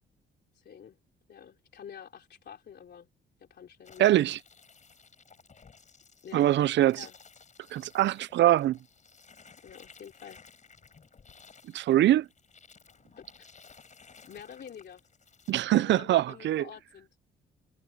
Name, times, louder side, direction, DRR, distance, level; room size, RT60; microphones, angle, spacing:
voice 1, 0.5-1.0 1.3-3.1 3.4-4.2 6.2-6.5 6.8-7.2 9.6-10.4 13.2-13.8 14.2-15.1 15.7-17.1, left 8 dB, 60° left, 3.2 m, -47 dB
sound 1, 3.8-15.5, left 5 dB, 40° left, 4.5 m, -56 dB
voice 2, 4.0-4.4 6.3-7.1 7.7-8.8 11.7-12.3 15.5-16.6, right 13 dB, 65° right, 0.5 m, -23 dB
cardioid pair, 90°, 20 cm